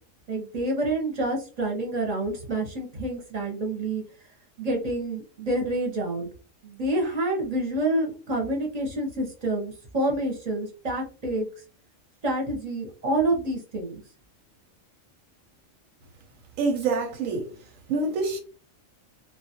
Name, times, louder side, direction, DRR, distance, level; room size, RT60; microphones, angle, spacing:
voice 1, 0.3-4.0 4.6-6.3 6.6-11.5 12.2-14.0, right 1 dB, 40° right, 0.6 m, -28 dB
voice 2, 16.6-17.5 17.9-18.4, right 3 dB, 90° right, 1.0 m, -26 dB
2.3 x 2.0 x 2.7 m
omnidirectional pair, 1.4 m